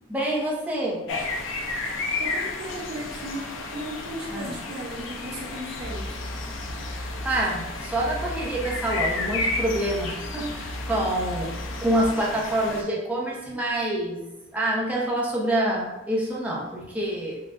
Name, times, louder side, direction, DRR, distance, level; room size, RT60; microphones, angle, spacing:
voice 1, 0.1-1.0 4.3-4.5 6.9-11.5 11.8-14.2 14.5-17.4, right 1 dB, 5° right, -4 dB, 0.7 m, -27 dB
sound 1, 1.1-12.8, left 3 dB, 80° left, 0.5 m, -33 dB
voice 2, 2.2-6.3, right 1 dB, 55° right, -3 dB, 0.7 m, -36 dB
sound 2, 5.8-12.6, equal, 40° left, 1.1 m, -37 dB
5.3 x 2.3 x 2.5 m, 0.98 s
head